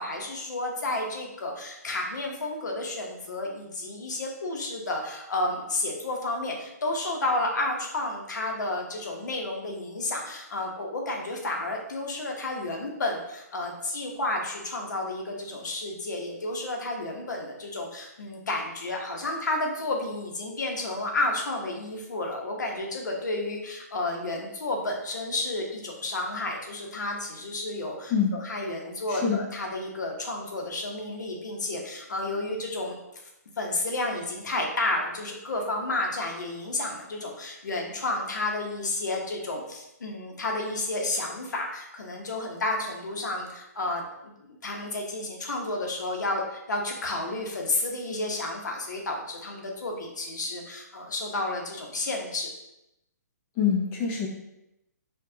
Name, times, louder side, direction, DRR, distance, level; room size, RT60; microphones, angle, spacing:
voice 1, 0.0-33.0 33.6-52.5, left 2 dB, 85° left, 1 dB, 0.9 m, -31 dB
voice 2, 29.1-29.4 53.6-54.3, left 6 dB, 20° left, -1 dB, 0.5 m, -25 dB
4.3 x 2.3 x 2.7 m, 0.87 s
hypercardioid pair, 160°, 9 cm